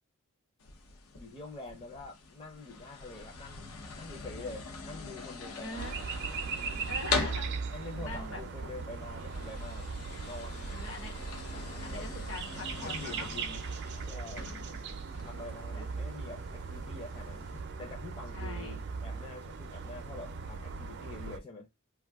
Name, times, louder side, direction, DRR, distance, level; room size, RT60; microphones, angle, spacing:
sound 1, 0.6-17.6, left 4 dB, 85° left, 0.7 m, -42 dB
voice 1, 1.1-5.9 6.5-6.9 7.7-9.9 10.2-10.7 11.5-12.1 12.8-13.6 14.0-14.5 15.1-17.5 17.8-21.7, left 3 dB, 25° left, 0.6 m, -46 dB
voice 2, 5.6-6.0 6.9-7.7 8.0-8.4 10.7-11.1 11.8-13.3 14.5-15.3 15.7-15.9 18.3-18.8, left 2 dB, 60° left, 1.0 m, -43 dB
sound 2, 5.7-21.4, right 4 dB, 50° right, 0.4 m, -39 dB
2.6 x 2.3 x 3.4 m
head